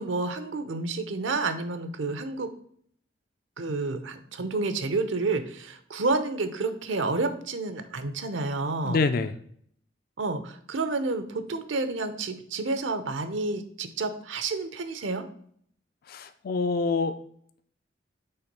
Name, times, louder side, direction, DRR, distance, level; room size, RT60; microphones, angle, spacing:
voice 1, 0.0-2.5 3.6-9.0 10.2-15.2, right 3 dB, 80° right, 10 dB, 0.7 m, -30 dB
voice 2, 8.8-9.3 16.1-17.1, left 4 dB, 50° left, 10 dB, 0.4 m, -26 dB
5.7 x 3.6 x 5.3 m, 0.63 s
head